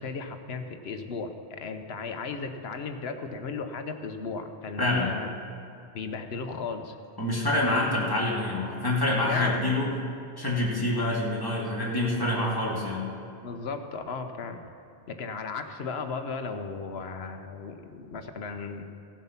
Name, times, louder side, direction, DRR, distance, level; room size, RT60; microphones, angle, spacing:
voice 1, 0.0-5.3 5.9-7.0 7.7-7.8 9.3-9.6 13.4-14.6 15.1-18.9, left 4 dB, 75° left, 7 dB, 1.1 m, -35 dB
voice 2, 4.8-5.1 7.2-9.9 10.4-13.0, left 1 dB, 20° left, -5 dB, 2.3 m, -26 dB
16.5 x 7.4 x 5.8 m, 2.8 s
omnidirectional pair, 1.1 m